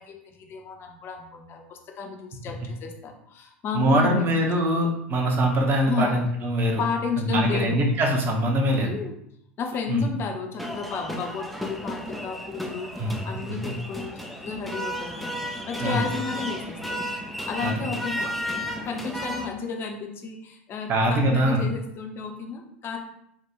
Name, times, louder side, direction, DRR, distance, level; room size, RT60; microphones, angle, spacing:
voice 1, 0.0-4.3 4.6-4.7 5.9-6.2 6.8-7.8 8.8-9.2 9.6-15.3 15.7-17.0 17.5-18.3 18.8-23.0, left 6 dB, 35° left, 2 dB, 0.8 m, -32 dB
voice 2, 3.7-6.8 7.2-8.9 9.9-10.1 13.0-13.1 15.8-16.0 17.6-17.7 20.9-21.6, right 1 dB, 30° right, 1 dB, 1.0 m, -23 dB
sound 1, 10.6-19.5, equal, ahead, 0.5 m, -33 dB
3.6 x 2.4 x 4.6 m, 0.74 s
figure-of-eight pair, 85°, 7 cm